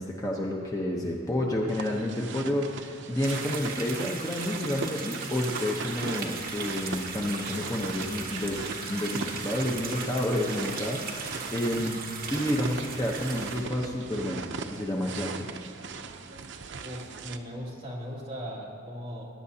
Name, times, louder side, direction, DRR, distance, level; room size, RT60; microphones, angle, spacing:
voice 1, 0.0-12.0 12.3-15.5, left 1 dB, 15° left, -1 dB, 0.8 m, -30 dB
sound 1, 1.7-17.4, right 4 dB, 60° right, 0.6 m, -39 dB
sound 2, 3.2-13.6, right 4 dB, 45° right, 1.4 m, -38 dB
voice 2, 16.8-19.3, equal, 25° right, -5 dB, 2.3 m, -38 dB
21.5 x 10.0 x 2.8 m, 2.9 s
head